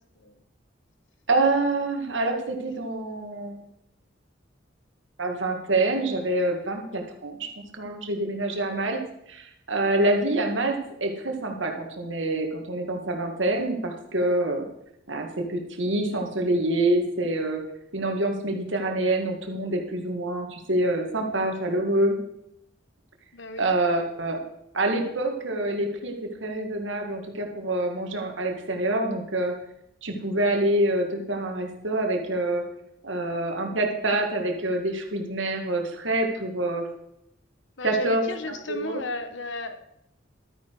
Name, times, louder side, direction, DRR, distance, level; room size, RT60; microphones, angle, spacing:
voice 1, 1.3-3.6 5.2-7.5 7.7-9.0 9.3-14.7 15.1-17.6 17.9-22.2 23.6-24.4 24.7-29.5 30.0-32.6 33.0-36.9 37.8-38.2 38.5-39.0, right 2 dB, 80° right, 3 dB, 2.1 m, -26 dB
voice 2, 23.3-23.7 37.8-39.8, left 2 dB, 80° left, 10 dB, 1.2 m, -34 dB
12.5 x 9.7 x 4.8 m, 0.79 s
head